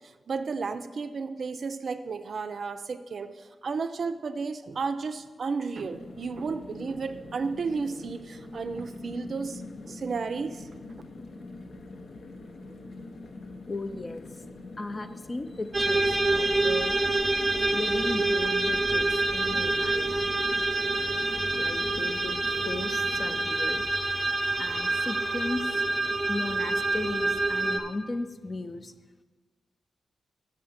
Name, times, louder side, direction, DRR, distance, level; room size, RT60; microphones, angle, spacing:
voice 1, 0.3-10.7, right 4 dB, 60° right, 10 dB, 0.4 m, -33 dB
sound 1, 5.8-23.5, left 2 dB, 85° left, 0.9 m, -44 dB
voice 2, 13.7-14.2 14.8-16.9 17.7-20.3 21.5-22.4 22.6-23.8 24.6-25.7 26.3-28.9, left 2 dB, 30° left, 10 dB, 0.4 m, -36 dB
sound 2, 15.7-27.8, right 2 dB, 20° right, 0.7 m, -27 dB
7.5 x 6.1 x 5.7 m, 1.3 s
wide cardioid pair, 120°, 0 cm